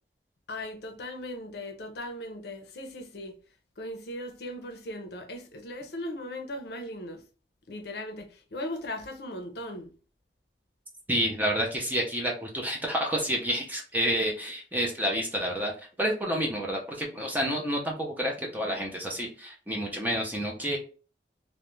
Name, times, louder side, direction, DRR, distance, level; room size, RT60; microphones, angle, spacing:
voice 1, 0.5-3.4 3.8-7.2 7.7-9.9, left 1 dB, 65° left, 0.5 m, -38 dB
voice 2, 11.1-20.8, equal, 10° right, 0.5 m, -29 dB
2.3 x 2.1 x 3.0 m
head